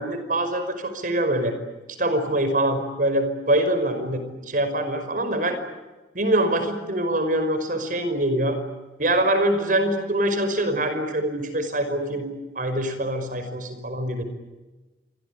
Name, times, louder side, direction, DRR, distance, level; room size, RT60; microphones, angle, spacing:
voice 1, 0.0-1.5 2.0-5.6 6.1-8.6 9.0-12.3 12.6-14.2, right 1 dB, 50° right, 9 dB, 5.4 m, -24 dB
28.0 x 24.0 x 8.5 m, 1.2 s
head